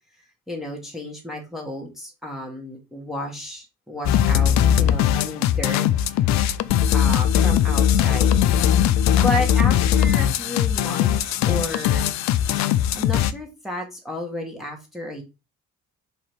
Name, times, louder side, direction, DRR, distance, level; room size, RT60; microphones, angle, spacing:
voice 1, 0.2-6.4 6.9-8.4 9.1-12.1 12.7-15.2, left 1 dB, ahead, 0 dB, 1.4 m, -32 dB
sound 1, 4.0-13.3, left 10 dB, 45° left, 0.4 m, -19 dB
3.9 x 2.9 x 4.7 m, 0.28 s
figure-of-eight pair, 50°, 41 cm